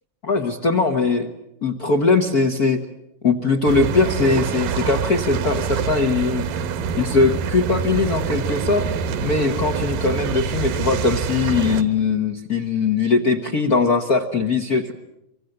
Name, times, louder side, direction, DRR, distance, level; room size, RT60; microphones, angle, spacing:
voice 1, 0.2-1.3 1.6-2.8 3.2-6.4 7.0-8.9 9.2-14.9, left 4 dB, 55° left, 5 dB, 1.0 m, -20 dB
sound 1, 3.7-11.8, right 6 dB, 80° right, 2.9 m, -25 dB
25.0 x 24.5 x 7.9 m, 0.84 s
omnidirectional pair, 3.9 m